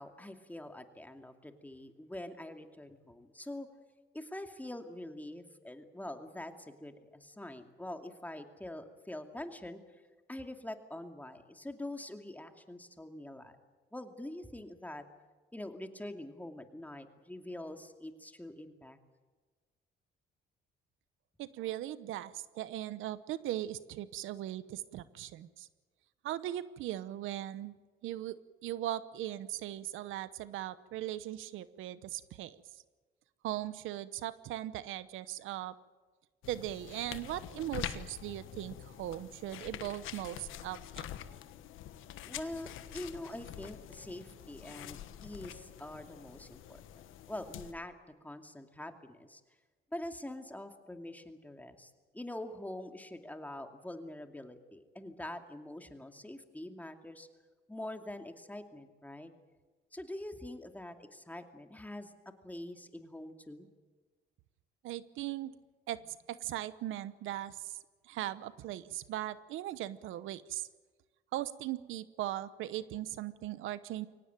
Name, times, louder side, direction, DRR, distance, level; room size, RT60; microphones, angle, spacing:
voice 1, 0.0-3.7 4.1-9.8 10.3-13.5 13.9-15.0 15.5-19.0 42.2-46.8 47.3-47.9 48.2-49.4 49.9-57.3 57.7-59.3 59.9-62.1 62.4-63.7, left 1 dB, 10° left, 6 dB, 2.5 m, -44 dB
voice 2, 21.4-25.7 26.2-27.7 28.0-32.6 33.4-35.7 36.5-41.0 64.8-65.5 65.9-67.8 68.1-70.7 71.3-74.1, right 13 dB, 90° right, 16 dB, 0.9 m, -39 dB
sound 1, 36.4-47.7, left 11 dB, 90° left, 1.4 m, -46 dB
24.0 x 18.0 x 9.1 m, 1.3 s
cardioid pair, 90°, 20 cm